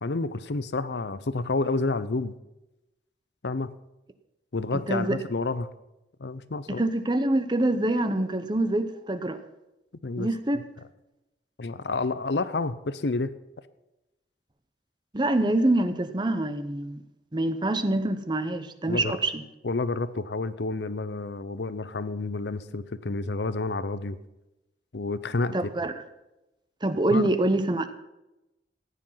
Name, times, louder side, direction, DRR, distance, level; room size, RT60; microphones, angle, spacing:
voice 1, 0.0-2.3 3.4-3.7 4.5-5.7 6.2-6.8 10.0-10.3 11.6-13.3 18.9-19.2 19.6-24.2 24.9-25.5 27.1-27.2, left 3 dB, 75° left, 15 dB, 0.7 m, -29 dB
voice 2, 4.7-5.2 6.7-9.4 10.2-10.6 15.1-17.0 17.3-19.4 25.5-25.9 26.8-27.9, right 1 dB, 25° right, 10 dB, 0.8 m, -25 dB
15.0 x 10.0 x 5.7 m, 0.97 s
head